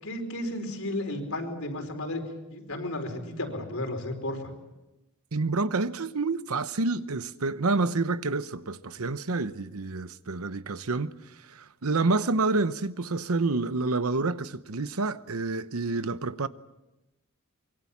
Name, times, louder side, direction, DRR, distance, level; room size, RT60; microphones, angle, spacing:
voice 1, 0.0-2.2 2.5-4.5, left 1 dB, 70° left, 4.9 m, -33 dB
voice 2, 5.3-16.5, right 3 dB, 80° right, 0.9 m, -28 dB
25.0 x 23.5 x 7.3 m
head